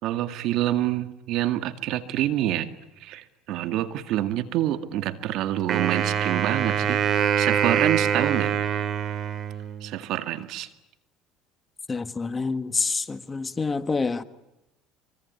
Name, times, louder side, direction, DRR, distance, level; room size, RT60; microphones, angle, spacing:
voice 1, 0.0-2.7 3.0-8.5 9.8-10.7, right 13 dB, 65° right, 2.0 m, -27 dB
Wind instrument woodwind instrument, 5.7-10.0, right 8 dB, 45° right, 3.3 m, -24 dB
voice 2, 11.9-14.2, left 4 dB, 20° left, 1.5 m, -27 dB
24.5 x 24.5 x 9.5 m
supercardioid pair, 95°, 0 cm